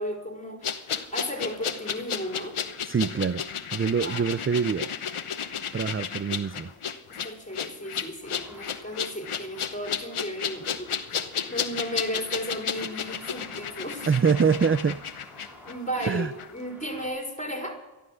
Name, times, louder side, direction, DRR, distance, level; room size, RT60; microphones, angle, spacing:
voice 1, 0.0-2.6 4.0-4.3 7.1-11.2 11.5-14.1 15.6-17.8, equal, 15° left, 1 dB, 4.4 m, -34 dB
sound 1, 0.6-16.1 16.4-16.5, left 7 dB, 85° left, 1.0 m, -33 dB
voice 2, 2.8-3.4 3.7-4.9 5.7-6.7 14.1-15.0 16.1-16.3, right 6 dB, 25° right, 14 dB, 0.4 m, -24 dB
sound 2, 8.3-17.1, left 1 dB, 5° right, 5.1 m, -52 dB
13.0 x 12.0 x 6.4 m, 1.1 s
wide cardioid pair, 55°, 49 cm